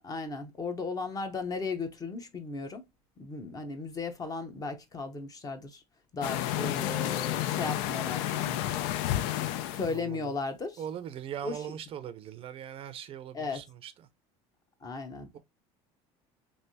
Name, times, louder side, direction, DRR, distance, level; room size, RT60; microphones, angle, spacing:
voice 1, 0.0-2.8 3.2-5.8 6.1-8.6 9.7-10.8 11.4-11.6 13.3-13.6 14.8-15.4, left 4 dB, 30° left, 0.8 m, -36 dB
sound 1, 6.2-9.9, left 13 dB, 85° left, 0.4 m, -31 dB
voice 2, 9.9-10.3 10.8-13.9 15.3-15.4, right 9 dB, 45° right, 0.5 m, -40 dB
3.3 x 2.6 x 2.6 m
supercardioid pair, 115°, 14 cm